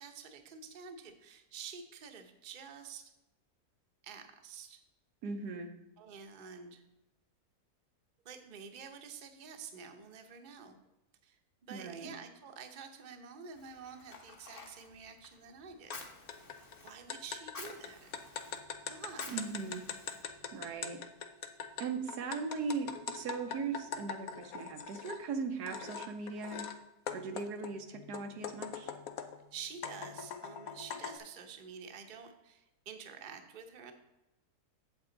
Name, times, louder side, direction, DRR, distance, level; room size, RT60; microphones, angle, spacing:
voice 1, 0.0-3.1 4.0-4.8 6.0-6.8 8.2-10.8 11.2-16.1 16.8-18.1 18.9-19.4 29.5-33.9, right 6 dB, 40° right, 5 dB, 0.9 m, -49 dB
voice 2, 5.2-5.7 11.7-12.1 19.3-19.8 20.5-21.0 21.8-26.7 27.1-28.9, right 4 dB, 85° right, 6 dB, 1.5 m, -39 dB
Fire, 13.5-20.7, left 3 dB, 40° left, 1.3 m, -52 dB
sound 1, 15.9-16.0 16.3-25.2 25.7-26.8 27.1-29.4 29.8-31.2, left 7 dB, 65° left, 1.2 m, -42 dB
8.1 x 8.0 x 3.9 m, 0.96 s
omnidirectional pair, 1.7 m